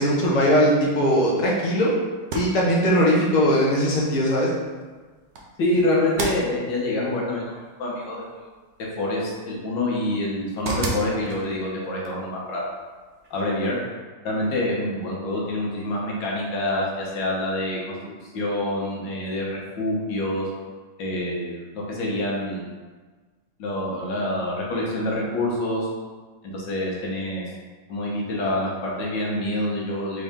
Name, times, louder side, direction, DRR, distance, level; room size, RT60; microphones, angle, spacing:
voice 1, 0.0-1.9 2.3-4.5, equal, 45° left, -4 dB, 0.5 m, -20 dB
sound 1, 2.1-13.8, right 2 dB, 65° right, 0.7 m, -37 dB
voice 2, 5.6-7.4 7.8-8.2 9.0-12.7 13.3-13.8 14.2-17.8 18.3-20.5 21.0-22.7 23.6-25.9 26.4-27.4 27.9-30.2, left 1 dB, 75° left, -3 dB, 1.6 m, -26 dB
4.1 x 3.6 x 3.5 m, 1.4 s
omnidirectional pair, 2.1 m